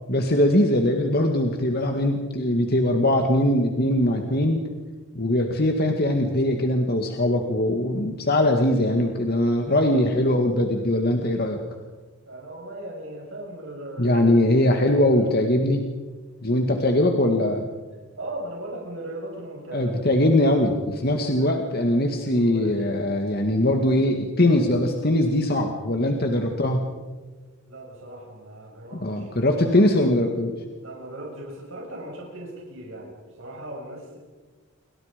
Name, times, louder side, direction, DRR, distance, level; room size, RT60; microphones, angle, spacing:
voice 1, 0.1-4.6 5.1-11.6 14.0-15.8 16.4-17.7 19.7-26.8 28.9-30.6, left 1 dB, 45° left, 3 dB, 2.0 m, -21 dB
voice 2, 12.2-15.4 18.2-20.2 21.1-21.6 22.2-23.4 27.6-29.4 30.8-34.2, right 1 dB, 65° right, -2 dB, 6.7 m, -38 dB
28.5 x 24.5 x 5.3 m, 1.3 s
head